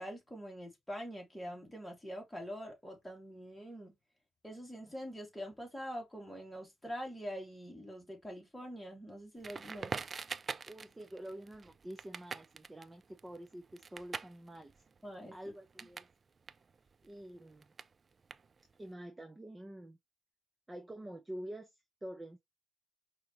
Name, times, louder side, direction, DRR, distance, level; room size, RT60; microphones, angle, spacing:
voice 1, 0.0-4.0 4.4-10.0 15.0-15.4, equal, 5° left, 2.3 m, -44 dB
Crackle, 9.4-16.1 16.4-18.8, right 5 dB, 35° right, 0.3 m, -45 dB
voice 2, 10.7-14.8 15.3-16.1 17.0-17.7 18.8-20.0 20.7-22.4, right 1 dB, 15° right, 0.7 m, -47 dB
4.8 x 3.0 x 3.0 m
cardioid pair, 90°, 0 cm